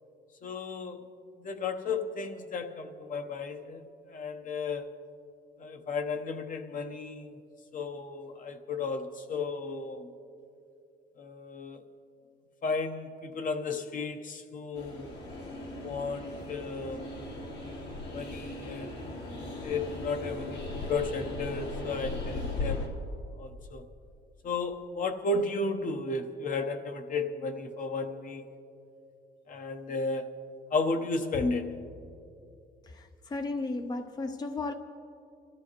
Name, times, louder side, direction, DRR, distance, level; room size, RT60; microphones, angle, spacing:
voice 1, 0.4-1.0 1.4-3.8 4.1-4.9 5.6-7.3 7.7-10.1 11.2-11.8 12.6-15.1 15.8-17.1 18.1-18.9 19.6-22.9 23.4-23.8 24.4-28.4 29.5-30.3 30.7-31.8, left 3 dB, 50° left, 6 dB, 1.0 m, -34 dB
Train, 14.7-22.9, left 2 dB, 80° left, 3.6 m, -38 dB
voice 2, 32.8-34.7, left 3 dB, 25° left, 7 dB, 0.5 m, -34 dB
25.0 x 14.0 x 3.1 m, 2.6 s
cardioid pair, 115°, 17 cm